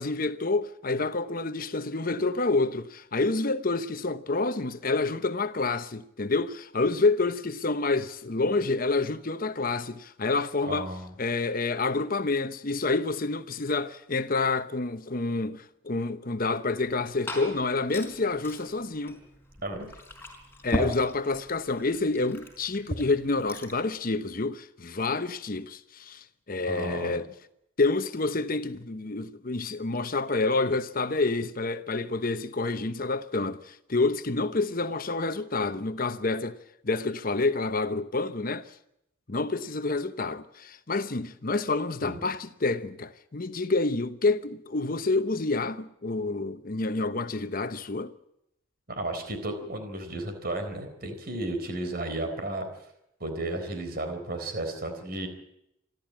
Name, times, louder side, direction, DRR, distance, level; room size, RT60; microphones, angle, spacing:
voice 1, 0.0-10.9 11.2-19.2 20.6-27.3 27.8-36.6 36.8-38.7 39.3-48.1, left 3 dB, 45° left, 0.9 m, -28 dB
voice 2, 10.7-11.1 19.6-19.9 26.7-27.2 42.0-42.2 48.9-52.6 53.2-55.3, right 2 dB, 50° right, 4.1 m, -33 dB
Glass / Fill (with liquid), 16.8-23.8, left 1 dB, 10° left, 4.7 m, -38 dB
27.5 x 12.5 x 8.8 m
head